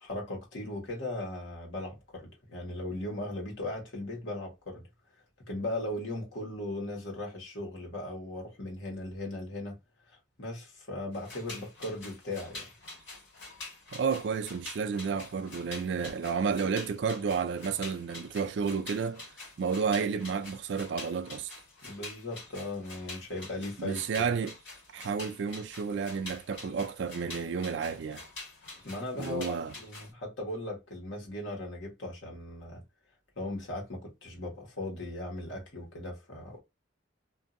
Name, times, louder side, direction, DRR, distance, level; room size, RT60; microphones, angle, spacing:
voice 1, 0.0-4.8 5.5-9.8 10.1-12.7 21.8-24.2 28.8-32.8 33.4-36.6, left 1 dB, 80° left, 1.4 m, -38 dB
sound 1, 11.1-30.1, left 2 dB, 65° left, 1.9 m, -46 dB
voice 2, 13.9-19.3 19.6-21.5 23.8-24.6 24.9-28.2 29.1-29.7, right 5 dB, 65° right, 0.4 m, -31 dB
2.7 x 2.6 x 2.5 m
head